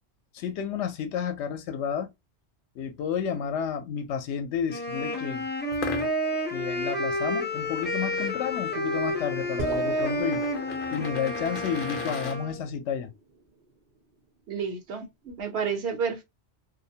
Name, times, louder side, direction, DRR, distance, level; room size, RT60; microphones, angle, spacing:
voice 1, 0.3-2.1 2.8-5.4 6.5-10.5 10.9-13.1, left 7 dB, 80° left, 0.9 m, -31 dB
Wind instrument woodwind instrument, 4.7-12.6, equal, 15° left, 0.5 m, -30 dB
sound 1, 5.7-12.4, left 6 dB, 60° left, 0.6 m, -40 dB
sound 2, 9.6-14.0, right 3 dB, 45° right, 0.7 m, -41 dB
voice 2, 14.5-16.2, right 6 dB, 70° right, 1.0 m, -30 dB
2.5 x 2.0 x 2.6 m
omnidirectional pair, 1.2 m